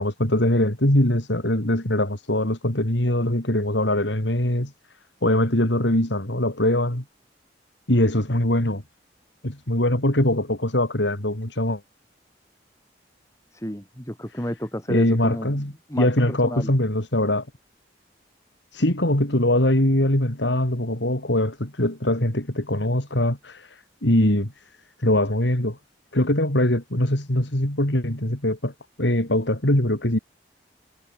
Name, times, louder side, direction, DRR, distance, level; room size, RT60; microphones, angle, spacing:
voice 1, 0.0-4.7 5.2-7.0 7.9-8.8 9.4-11.8 14.9-17.5 18.7-24.5 25.0-25.8 26.1-28.7 29.0-30.2, left 1 dB, 80° left, 4.2 m, -22 dB
voice 2, 13.5-15.6 15.9-16.7, equal, 15° left, 5.2 m, -31 dB
head